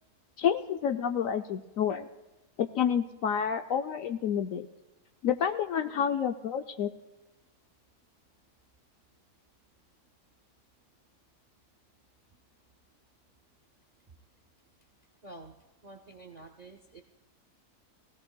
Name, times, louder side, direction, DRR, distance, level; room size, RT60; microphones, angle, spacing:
voice 1, 0.4-2.1 2.6-4.7 5.2-6.9, left 8 dB, 70° left, 7 dB, 0.9 m, -29 dB
voice 2, 15.2-15.6 15.8-17.0, right 2 dB, 45° right, 4 dB, 0.5 m, -48 dB
20.5 x 16.5 x 2.2 m, 1.1 s
omnidirectional pair, 1.7 m